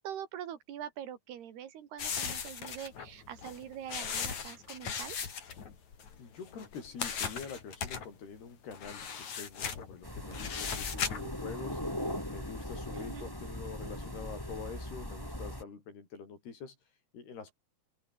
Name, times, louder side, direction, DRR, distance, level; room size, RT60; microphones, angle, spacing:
voice 1, 0.0-5.2 12.9-13.3, right 10 dB, 90° right, 4.4 m, -44 dB
sound 1, 2.0-6.2 6.5-8.1 8.7-11.3, left 6 dB, 50° left, 4.3 m, -38 dB
voice 2, 6.2-11.8 12.3-16.8 17.1-17.5, left 5 dB, 85° left, 7.5 m, -45 dB
sound 2, 10.0-15.6, left 1 dB, 5° left, 4.9 m, -39 dB
open air
omnidirectional pair, 4.5 m